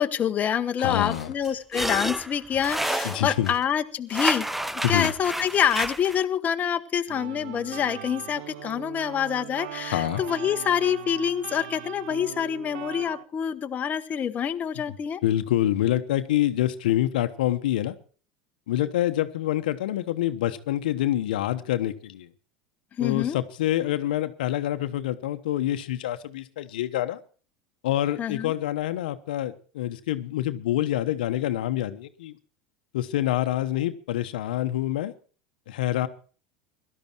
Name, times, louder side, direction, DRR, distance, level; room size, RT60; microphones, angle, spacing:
voice 1, 0.0-4.5 4.9-15.2 23.0-23.4 28.2-28.5, left 8 dB, 35° left, 7 dB, 1.1 m, -26 dB
voice 2, 0.8-1.3 3.0-3.5 4.8-5.1 9.9-10.2 15.2-17.9 18.7-22.3 23.0-27.2 27.8-32.4 32.9-35.1 35.7-36.1, left 13 dB, 80° left, 10 dB, 1.1 m, -26 dB
sound 1, 1.1-3.6 4.1-6.2, right 1 dB, 5° right, 0.7 m, -30 dB
sound 2, 7.1-13.2, right 14 dB, 70° right, 0.7 m, -40 dB
17.0 x 12.0 x 4.5 m, 0.39 s
hypercardioid pair, 90°, 5 cm